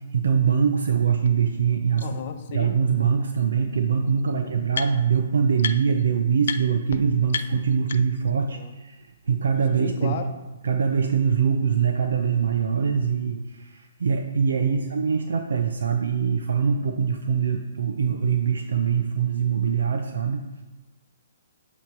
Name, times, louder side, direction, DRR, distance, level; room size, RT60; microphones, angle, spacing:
voice 1, 0.1-2.1 2.5-10.1 10.6-20.6, right 6 dB, 85° right, 4 dB, 0.7 m, -23 dB
sound 1, 1.3-1.4 2.0-2.1 3.4-3.5 3.7-5.2 5.6-6.0 6.4-6.6 6.9-7.0 7.3-8.3, left 6 dB, 70° left, 0.5 m, -33 dB
voice 2, 2.0-2.8 4.4-4.5 8.5-8.7 9.8-10.3 14.7-15.0, left 7 dB, 40° left, 6 dB, 0.8 m, -35 dB
9.2 x 3.2 x 5.9 m, 1.1 s
hypercardioid pair, 160°, 0 cm